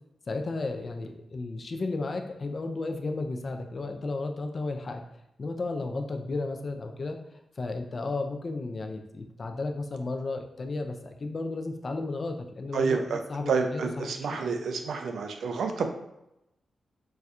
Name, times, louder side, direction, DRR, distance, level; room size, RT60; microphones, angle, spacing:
voice 1, 0.3-5.0 5.4-7.2 7.6-13.0 13.3-14.4, left 3 dB, 35° left, 5 dB, 0.3 m, -33 dB
voice 2, 12.7-13.2 13.5-15.9, right 5 dB, 75° right, 5 dB, 0.3 m, -29 dB
4.1 x 2.2 x 2.4 m, 0.85 s
wide cardioid pair, 175°, 0 cm